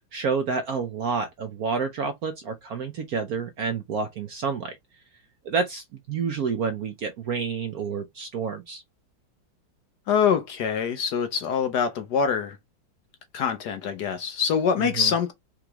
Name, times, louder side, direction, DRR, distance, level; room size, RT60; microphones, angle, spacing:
voice 1, 0.1-4.8 5.4-8.8 14.8-15.1, right 5 dB, 65° right, 0.9 m, -29 dB
voice 2, 10.1-12.6 13.3-15.3, left 7 dB, 65° left, 1.1 m, -24 dB
4.9 x 3.1 x 3.3 m
omnidirectional pair, 2.3 m